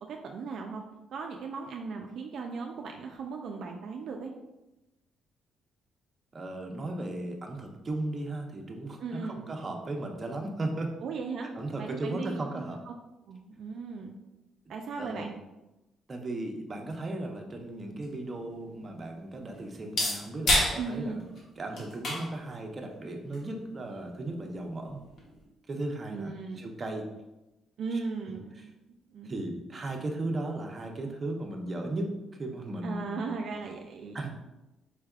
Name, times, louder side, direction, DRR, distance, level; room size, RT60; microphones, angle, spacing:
voice 1, 0.1-0.8 1.1-4.3 9.0-9.4 11.0-12.9 13.3-14.1 14.7-15.3 20.7-21.2 26.1-26.7 27.8-28.7 29.1-29.3 32.8-34.2, right 4 dB, 70° right, 2 dB, 0.4 m, -37 dB
voice 2, 6.3-10.9 11.5-12.8 15.0-15.4 16.1-21.2 21.6-25.0 25.7-27.1 29.2-33.3 34.1-34.3, right 2 dB, 35° right, 2 dB, 0.7 m, -36 dB
sound 1, 17.8-25.4, left 1 dB, 65° left, 1.1 m, -34 dB
4.5 x 3.3 x 2.4 m, 0.99 s
cardioid pair, 90°, 0 cm